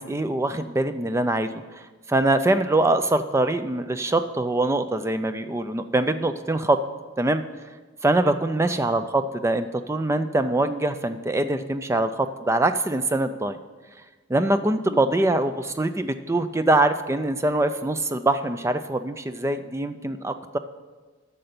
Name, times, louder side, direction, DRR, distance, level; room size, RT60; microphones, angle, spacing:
voice 1, 0.0-1.5 1.7-1.8 2.1-6.8 7.2-7.4 8.0-13.6 14.3-20.6, right 2 dB, 15° right, 10 dB, 0.3 m, -23 dB
9.8 x 6.7 x 6.7 m, 1.3 s
head